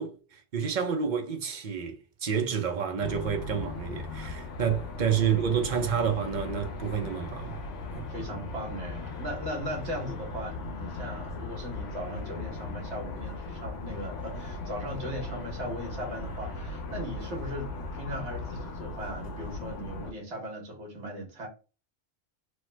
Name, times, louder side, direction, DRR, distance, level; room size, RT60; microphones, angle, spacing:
voice 1, 0.0-7.6 7.9-8.1, right 7 dB, 50° right, 0.6 m, -29 dB
sound 1, 3.0-20.1, left 3 dB, 75° left, 1.0 m, -38 dB
voice 2, 5.1-5.5 8.1-21.5, equal, 65° right, 1.4 m, -38 dB
3.1 x 2.0 x 3.2 m
omnidirectional pair, 1.2 m